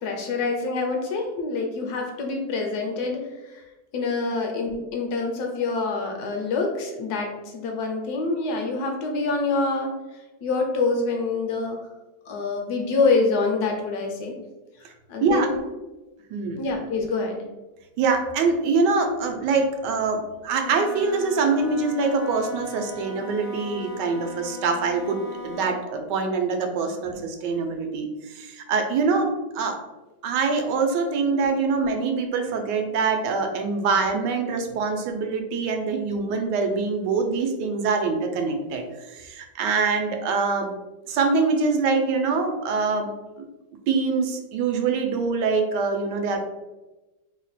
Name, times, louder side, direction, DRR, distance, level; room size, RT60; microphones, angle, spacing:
voice 1, 0.0-3.6 3.9-9.9 10.4-11.8 12.3-14.4 15.1-15.6 16.5-17.4 31.6-31.7, left 3 dB, 70° left, 2 dB, 1.1 m, -26 dB
voice 2, 16.3-16.6 18.0-25.2 25.4-29.8 30.2-40.7 41.1-43.1 43.4-43.5 43.9-46.4, right 4 dB, 85° right, 4 dB, 1.2 m, -24 dB
Wind instrument woodwind instrument, 20.5-25.9, left 3 dB, 55° left, 0.5 m, -39 dB
3.2 x 2.1 x 3.9 m, 1.1 s
omnidirectional pair, 1.8 m